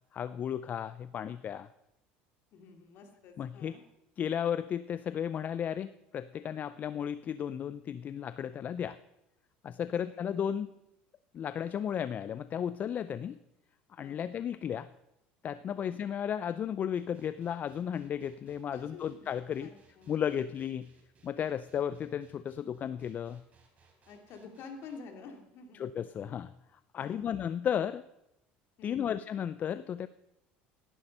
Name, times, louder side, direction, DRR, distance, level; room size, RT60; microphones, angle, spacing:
voice 1, 0.1-1.7 3.4-3.7 4.2-9.0 9.6-10.7 11.3-13.4 13.9-14.9 15.4-19.7 20.1-20.9 21.2-23.4 25.7-26.5 26.9-28.0 28.8-30.1, left 8 dB, 40° left, 15 dB, 0.4 m, -34 dB
voice 2, 2.5-3.8 9.8-10.7 14.0-14.4 15.7-16.0 18.7-19.3 19.6-20.1 24.1-25.8 27.0-27.3 28.8-29.1, left 4 dB, 60° left, 4 dB, 2.7 m, -50 dB
sound 1, 17.0-25.0, right 5 dB, 35° right, 4.2 m, -65 dB
16.5 x 11.0 x 5.4 m, 0.87 s
supercardioid pair, 100°, 4 cm